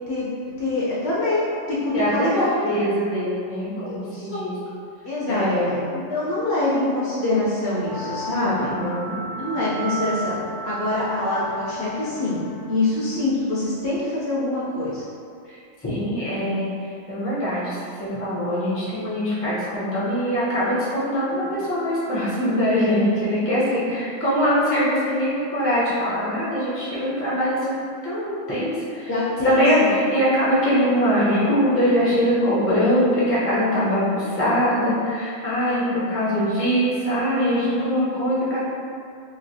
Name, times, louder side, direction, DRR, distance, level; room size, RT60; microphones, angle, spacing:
voice 1, 0.6-2.8 3.8-4.4 5.0-5.5 5.9-8.7 9.4-10.4 10.6-12.4 12.7-15.0 29.1-29.9, left 2 dB, 60° left, -8 dB, 0.8 m, -24 dB
voice 2, 1.9-2.3 2.6-4.5 5.3-5.8 8.4-9.2 15.4-15.6 15.8-27.8 28.0-29.1 29.4-38.6, equal, 15° left, -9 dB, 0.6 m, -22 dB
sound 1, 7.8-13.3, equal, 70° right, 0.4 m, -33 dB
3.1 x 2.8 x 2.7 m, 2.4 s
omnidirectional pair, 1.4 m